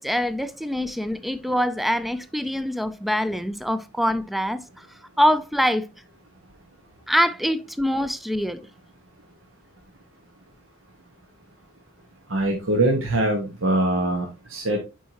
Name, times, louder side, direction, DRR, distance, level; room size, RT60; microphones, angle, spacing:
voice 1, 0.0-4.6 5.2-5.9 7.1-8.7, equal, ahead, 0.4 m, -24 dB
voice 2, 12.3-14.8, right 1 dB, 70° right, 1.3 m, -23 dB
8.7 x 4.6 x 2.8 m
head